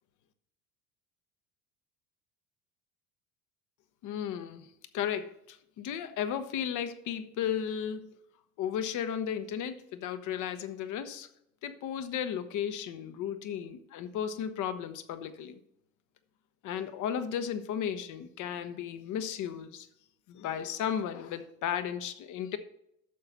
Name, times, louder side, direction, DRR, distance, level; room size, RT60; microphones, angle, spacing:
voice 1, 4.0-4.7 4.9-8.2 8.6-11.3 11.6-15.6 16.6-19.9 20.3-22.6, left 9 dB, 50° left, 9 dB, 1.1 m, -34 dB
11.5 x 6.9 x 4.1 m, 0.77 s
hypercardioid pair, 70°, 40 cm